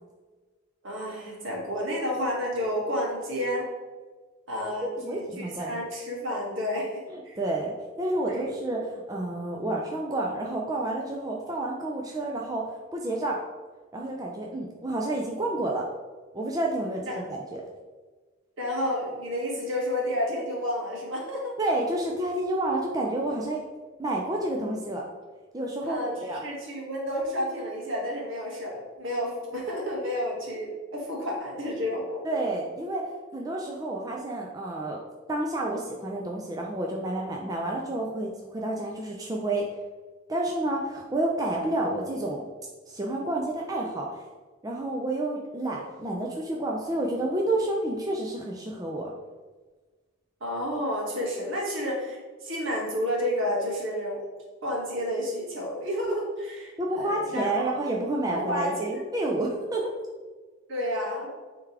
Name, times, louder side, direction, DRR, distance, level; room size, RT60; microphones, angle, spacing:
voice 1, 0.8-3.7 4.5-7.4 8.3-8.5 17.1-17.2 18.6-21.6 25.8-32.2 50.4-54.2 54.6-56.7 57.0-57.5 57.9-58.0 58.3-58.9 60.7-61.3, left 1 dB, 60° right, -3 dB, 2.0 m, -30 dB
voice 2, 5.0-5.9 7.1-7.7 8.0-13.4 13.9-15.9 16.3-17.6 21.6-23.6 24.0-25.0 25.5-26.4 32.2-35.0 35.3-39.7 40.3-42.4 42.9-44.3 44.6-49.1 56.8-59.9, right 1 dB, 15° right, -1 dB, 0.5 m, -30 dB
9.1 x 3.6 x 3.3 m, 1.3 s
head